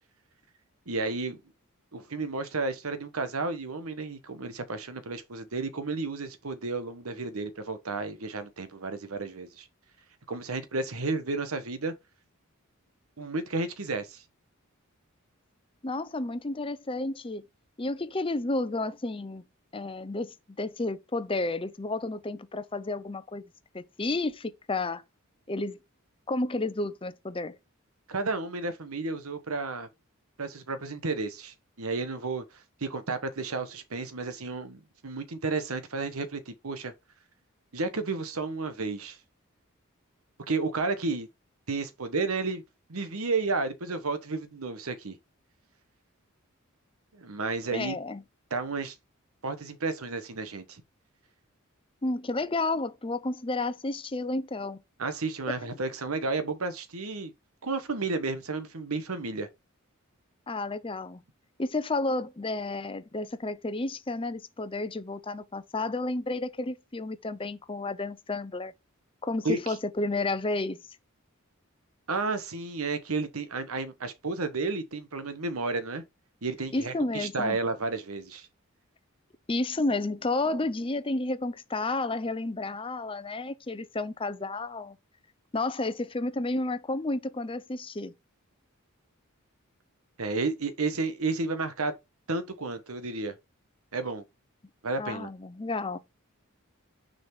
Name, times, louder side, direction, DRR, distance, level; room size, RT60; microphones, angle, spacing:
voice 1, 0.9-1.4 1.9-9.7 10.3-11.9 13.2-14.2 28.1-29.9 30.4-36.9 37.7-39.2 40.5-41.3 41.7-42.6 42.9-45.2 47.1-48.0 48.5-49.0 49.4-50.8 55.0-57.3 57.6-59.5 69.4-69.7 72.1-76.0 76.4-78.5 90.2-91.9 92.3-93.3 93.9-94.2 94.8-95.3, right 3 dB, 85° right, 1.2 m, -32 dB
voice 2, 15.8-17.4 17.8-19.4 19.7-23.4 23.7-25.0 25.5-25.8 26.3-27.6 47.7-48.2 52.0-54.8 60.5-61.2 61.6-68.7 69.2-70.8 76.7-77.6 79.5-85.0 85.5-88.1 95.0-96.0, left 2 dB, 25° left, 0.6 m, -31 dB
6.5 x 4.0 x 4.4 m
head